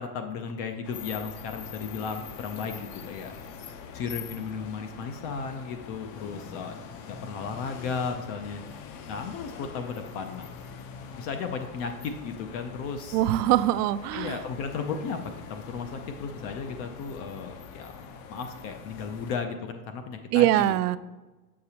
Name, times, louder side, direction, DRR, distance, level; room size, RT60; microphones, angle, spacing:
voice 1, 0.0-3.3 3.7-6.8 7.1-8.6 9.1-10.5 11.1-13.2 14.1-15.2 15.5-18.0 18.3-20.7, left 5 dB, 30° left, 6 dB, 0.4 m, -35 dB
sound 1, 0.8-19.4, left 6 dB, 50° left, 0.8 m, -44 dB
voice 2, 13.1-14.4 20.3-21.0, right 14 dB, 70° right, 15 dB, 0.5 m, -23 dB
6.8 x 6.6 x 2.8 m, 1.2 s
supercardioid pair, 130°, 48 cm